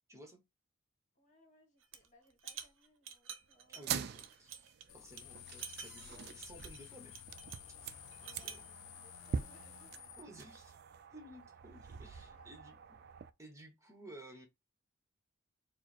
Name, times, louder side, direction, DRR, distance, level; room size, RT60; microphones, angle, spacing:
voice 1, 0.1-0.4 3.7-7.2 8.4-8.6 10.2-10.8 11.1-12.8 13.4-14.5, right 1 dB, 15° right, 1.1 m, -55 dB
voice 2, 1.1-4.2 8.2-10.1 12.3-12.8, equal, 40° left, 1.5 m, -66 dB
sound 1, 1.8-2.1 2.4-4.8 5.2-5.3 5.6-7.7 8.1-8.7, right 8 dB, 70° right, 0.7 m, -49 dB
sound 2, 3.7-13.3, right 7 dB, 50° right, 0.3 m, -45 dB
sound 3, 4.9-10.2, left 13 dB, 85° left, 0.3 m, -54 dB
4.6 x 2.1 x 4.2 m
head